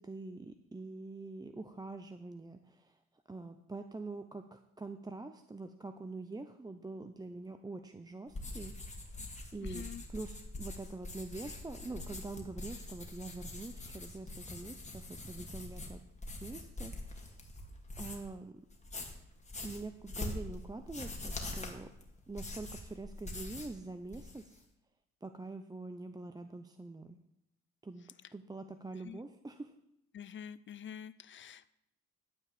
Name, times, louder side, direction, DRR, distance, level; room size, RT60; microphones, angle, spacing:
voice 1, 0.0-3.0 3.3-9.3 9.5-16.0 16.4-17.4 18.0-18.6 19.6-21.9 22.3-24.6 25.2-27.2 27.8-28.0 28.3-29.7, right 3 dB, 15° right, 8 dB, 0.6 m, -45 dB
sound 1, 8.3-18.4 18.7-23.8 24.0-24.6, left 2 dB, 20° left, 2.2 m, -44 dB
voice 2, 9.6-10.0 29.0-29.2 30.1-31.7, left 8 dB, 40° left, 15 dB, 0.6 m, -47 dB
12.5 x 4.7 x 8.4 m, 0.83 s
cardioid pair, 90°, 30 cm